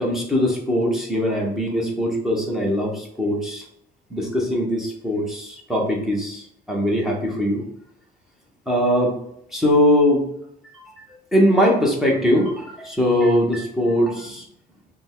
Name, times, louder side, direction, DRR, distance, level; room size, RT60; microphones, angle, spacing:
voice 1, 0.0-3.6 4.1-7.6 8.7-9.1 9.5-10.2 11.3-14.4, equal, ahead, -3 dB, 1.1 m, -21 dB
3.9 x 2.3 x 3.7 m, 0.74 s
cardioid pair, 110°, 17 cm